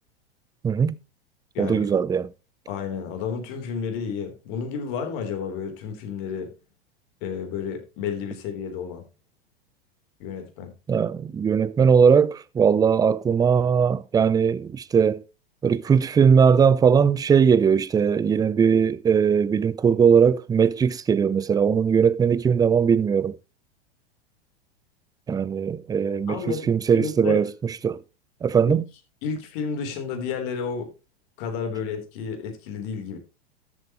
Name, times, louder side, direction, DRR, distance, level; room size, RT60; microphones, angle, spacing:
voice 1, 0.6-1.0 1.6-2.3 10.9-15.2 15.6-23.4 25.3-28.0 28.4-28.8, right 6 dB, 10° right, 0.5 m, -20 dB
voice 2, 1.5-1.9 2.7-6.5 7.2-9.0 10.2-10.7 26.3-27.4 28.7-28.8 29.2-30.9 31.4-33.2, left 6 dB, 55° left, 3.7 m, -31 dB
13.5 x 8.0 x 3.1 m
hypercardioid pair, 95°, 31 cm